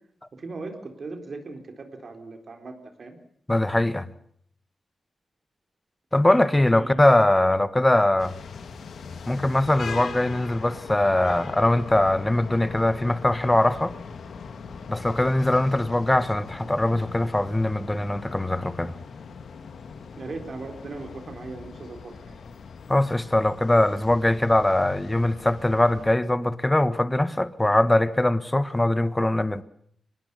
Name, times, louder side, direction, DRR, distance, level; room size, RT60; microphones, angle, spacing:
voice 1, 0.3-3.2 6.7-7.0 20.2-22.4, right 3 dB, 60° right, 4.0 m, -38 dB
voice 2, 3.5-4.1 6.1-8.3 9.3-13.9 14.9-19.0 22.9-29.6, left 1 dB, 15° left, 1.3 m, -22 dB
sound 1, 8.2-26.2, left 5 dB, 80° left, 2.1 m, -40 dB
24.0 x 20.0 x 7.0 m
cardioid pair, 65°, 0 cm